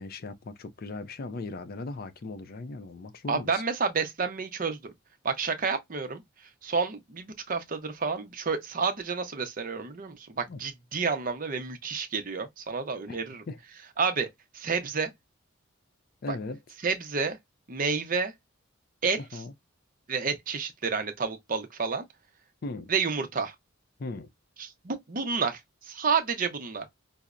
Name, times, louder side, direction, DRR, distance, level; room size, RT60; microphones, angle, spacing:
voice 1, 0.0-3.6 10.5-10.6 13.1-13.2 13.5-13.6 16.2-16.6 19.2-19.5 22.6-22.9 24.0-24.3, left 3 dB, 45° left, 0.4 m, -38 dB
voice 2, 3.3-4.9 5.2-6.2 6.6-13.4 14.0-14.3 14.5-15.1 16.3-16.4 16.8-17.4 17.7-18.3 19.0-19.4 20.1-22.0 22.9-23.5 24.6-26.8, right 5 dB, 40° right, 0.6 m, -30 dB
5.5 x 2.0 x 2.4 m
head